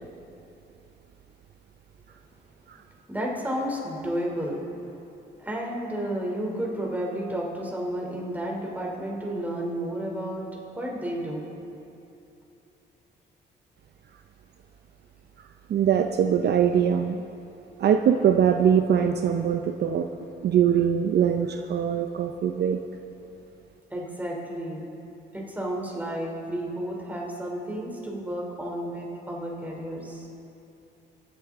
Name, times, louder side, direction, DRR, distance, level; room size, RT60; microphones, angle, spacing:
voice 1, 3.1-4.6 5.4-10.4 10.7-11.5 23.9-24.8 25.3-30.3, right 1 dB, 10° right, -2 dB, 2.9 m, -31 dB
voice 2, 15.7-17.2 17.8-20.1 20.4-22.8, right 8 dB, 55° right, 5 dB, 0.6 m, -22 dB
23.5 x 8.5 x 3.6 m, 2.8 s
cardioid pair, 90°, 20 cm